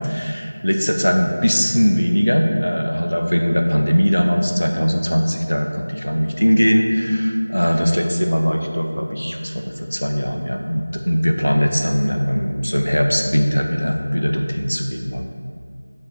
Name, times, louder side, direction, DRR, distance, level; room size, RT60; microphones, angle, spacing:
voice 1, 0.0-15.3, equal, 80° left, 3 dB, 0.8 m, -20 dB
6.9 x 4.2 x 4.7 m, 2.2 s
figure-of-eight pair, 170°, 0 cm